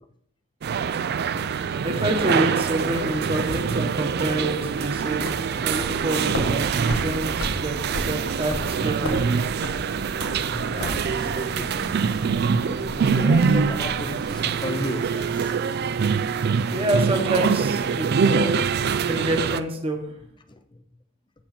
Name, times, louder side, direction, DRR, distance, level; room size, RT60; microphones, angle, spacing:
sound 1, 0.6-19.6, right 6 dB, 50° right, 0.3 m, -24 dB
voice 1, 1.8-5.3 5.6-9.2 16.7-18.5 19.0-20.0, right 1 dB, 25° right, 1.2 m, -27 dB
sound 2, 4.6-14.5, left 1 dB, 80° left, 1.1 m, -36 dB
voice 2, 10.5-12.1 12.5-15.5 20.5-20.6, left 2 dB, 20° left, 0.6 m, -34 dB
7.5 x 7.2 x 4.3 m
head